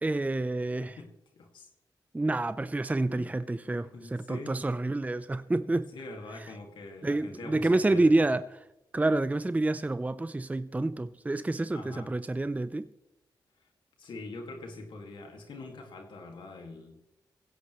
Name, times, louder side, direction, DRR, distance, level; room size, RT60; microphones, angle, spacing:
voice 1, 0.0-1.0 2.1-5.9 7.0-8.4 8.9-12.9, right 2 dB, 20° right, 0.6 m, -28 dB
voice 2, 0.8-1.7 3.0-3.3 3.6-4.6 5.9-8.1 11.7-12.1 14.0-17.0, left 2 dB, 80° left, 2.2 m, -44 dB
19.5 x 16.5 x 3.2 m
cardioid pair, 50°, 8 cm